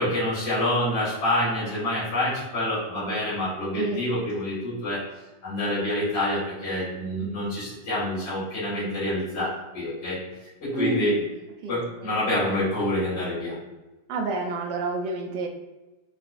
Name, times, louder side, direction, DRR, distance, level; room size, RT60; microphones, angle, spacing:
voice 1, 0.0-5.0 5.4-10.2 10.6-11.1 11.7-13.5, left 1 dB, 70° left, -13 dB, 2.3 m, -27 dB
voice 2, 3.7-4.0 10.7-11.2 11.6-11.8 14.1-15.5, right 3 dB, 75° right, 3 dB, 1.1 m, -29 dB
4.7 x 2.3 x 2.5 m, 1.1 s
omnidirectional pair, 2.0 m